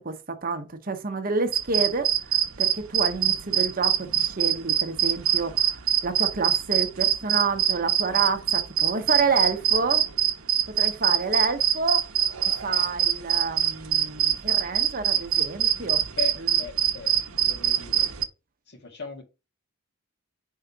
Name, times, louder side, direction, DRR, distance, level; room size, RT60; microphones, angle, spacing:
voice 1, 0.0-10.0 10.8-12.1 12.6-16.0, right 4 dB, 40° right, 0.9 m, -29 dB
sound 1, 1.5-18.3, right 11 dB, 75° right, 0.9 m, -24 dB
voice 2, 16.2-17.1 17.4-18.1 18.7-19.2, left 4 dB, 50° left, 1.8 m, -37 dB
5.6 x 3.8 x 4.7 m
head